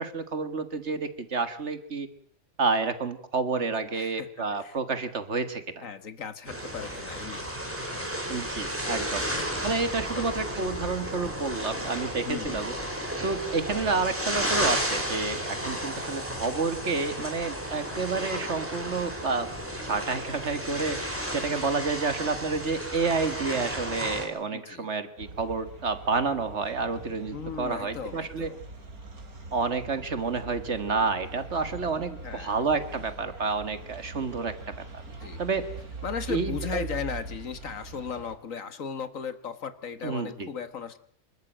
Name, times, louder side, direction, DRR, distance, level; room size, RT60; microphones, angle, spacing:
voice 1, 0.0-2.1 2.6-5.8 8.3-9.2 9.6-12.8 13.2-19.5 19.8-28.5 29.5-34.5 34.9-35.0 35.4-35.7 36.3-36.9 40.0-40.5, right 4 dB, 50° right, 11 dB, 1.9 m, -29 dB
voice 2, 3.9-4.3 4.6-4.8 5.8-7.5 9.1-9.3 9.6-10.3 12.2-12.6 24.5-24.9 27.3-28.6 32.2-32.6 35.2-35.4 36.0-41.0, left 7 dB, 65° left, 12 dB, 1.7 m, -37 dB
sound 1, 6.5-24.3, equal, 10° right, 4.7 m, -33 dB
sound 2, 25.2-38.3, right 3 dB, 80° right, 3.5 m, -42 dB
25.5 x 13.5 x 9.0 m, 0.62 s
omnidirectional pair, 1.5 m